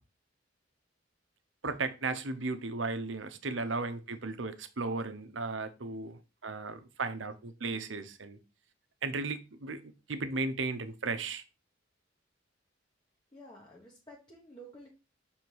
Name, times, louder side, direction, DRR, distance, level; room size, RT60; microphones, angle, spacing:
voice 1, 1.6-8.4 9.0-11.4, right 3 dB, 70° right, 0.9 m, -35 dB
voice 2, 13.3-14.9, right 1 dB, 25° left, 1.3 m, -51 dB
7.1 x 3.6 x 4.7 m
head